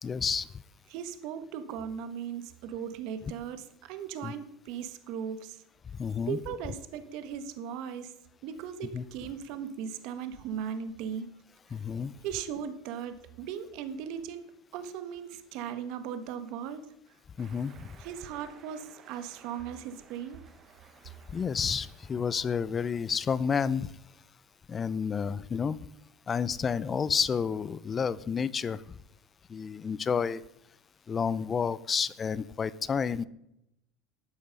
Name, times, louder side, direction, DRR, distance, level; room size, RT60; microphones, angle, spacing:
voice 1, 0.0-0.5 4.2-4.3 6.0-6.4 8.9-9.0 11.7-12.1 17.4-17.9 21.3-23.9 24.7-25.8 26.3-28.8 29.5-30.4 31.1-33.3, left 6 dB, 25° left, 19 dB, 0.6 m, -30 dB
voice 2, 0.9-5.6 6.3-8.1 8.4-11.3 12.2-14.5 14.7-16.9 18.0-20.4, right 8 dB, 65° right, 10 dB, 1.4 m, -38 dB
sound 1, 17.4-22.6, right 7 dB, 35° right, 1.2 m, -57 dB
13.0 x 8.8 x 5.3 m, 0.82 s
supercardioid pair, 125°, 0 cm